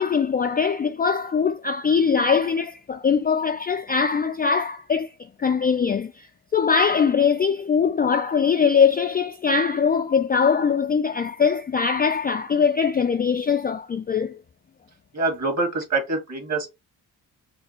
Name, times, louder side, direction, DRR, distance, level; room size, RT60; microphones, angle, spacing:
voice 1, 0.0-5.1 5.4-6.3 6.5-14.4, left 6 dB, 25° left, 0.3 m, -21 dB
voice 2, 15.1-16.7, right 3 dB, 40° right, 1.9 m, -25 dB
4.1 x 2.3 x 3.0 m
supercardioid pair, 55°, 42 cm